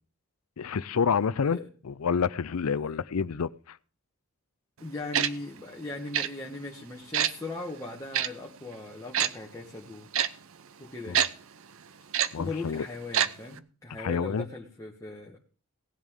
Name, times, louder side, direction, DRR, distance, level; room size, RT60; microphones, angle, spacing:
voice 1, 0.6-1.6 1.8-3.8 11.1-11.2 12.3-12.9 14.0-14.4, left 6 dB, 75° left, 19 dB, 0.5 m, -28 dB
voice 2, 4.8-10.1 10.8-11.2 12.4-15.4, left 2 dB, 15° left, -2 dB, 1.4 m, -39 dB
Tick-tock, 5.1-5.3 6.1-6.3 7.1-7.3 8.1-8.3 9.1-9.3 10.1-10.3 11.1-11.3 12.1-12.3 13.1-13.3 13.6-13.7, right 9 dB, 65° right, 0.7 m, -24 dB
17.5 x 10.5 x 3.7 m, 0.39 s
head